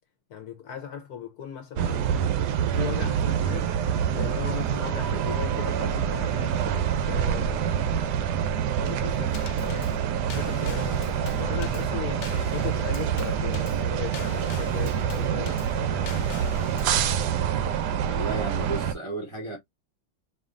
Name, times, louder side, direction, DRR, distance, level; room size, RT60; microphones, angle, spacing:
voice 1, 0.3-2.4 2.7-3.7 4.1-6.6 7.1-7.7 8.8-10.0 10.4-16.2, left 8 dB, 65° left, 1.0 m, -38 dB
sound 1, 1.8-18.9, right 8 dB, 70° right, 1.0 m, -26 dB
Drum kit / Snare drum / Bass drum, 9.3-17.0, left 8 dB, 85° left, 1.4 m, -42 dB
voice 2, 18.1-19.6, right 2 dB, 25° right, 0.7 m, -33 dB
4.3 x 3.0 x 2.4 m
omnidirectional pair, 2.2 m